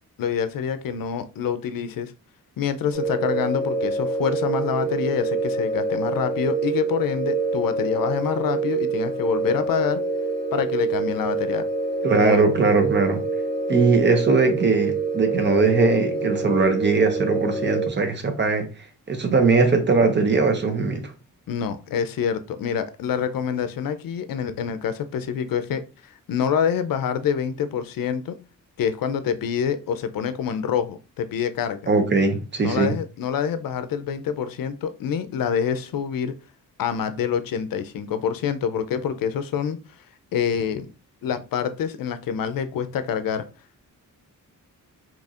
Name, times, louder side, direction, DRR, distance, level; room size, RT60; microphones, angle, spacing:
voice 1, 0.2-2.1 2.6-10.0 10.5-11.7 12.1-12.4 21.5-28.4 28.8-31.8 32.6-36.3 36.8-39.8 40.3-40.9 41.2-43.4, left 7 dB, 80° left, 0.5 m, -26 dB
sound 1, 2.9-17.9, right 3 dB, 5° left, 0.6 m, -26 dB
voice 2, 12.0-13.2 13.7-18.6 19.1-21.1 31.9-32.9, right 4 dB, 35° right, 0.6 m, -20 dB
4.2 x 2.9 x 2.4 m
wide cardioid pair, 170°, 34 cm